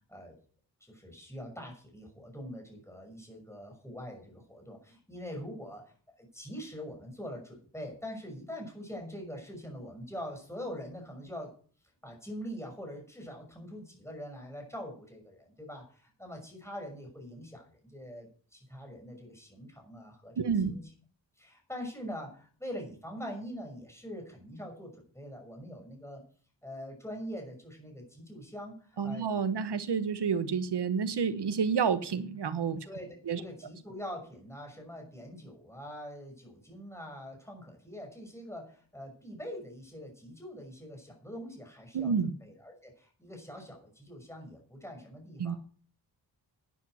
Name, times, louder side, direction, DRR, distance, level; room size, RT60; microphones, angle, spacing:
voice 1, 0.8-11.5 12.0-20.9 21.4-26.2 26.6-29.3 32.8-42.1 42.4-45.6, equal, 5° left, 5.9 m, -44 dB
voice 2, 20.4-20.7 29.0-32.9 33.3-33.4 41.9-42.3 45.4-45.6, right 6 dB, 70° right, 1.2 m, -29 dB
11.5 x 9.8 x 6.3 m
wide cardioid pair, 100°, 42 cm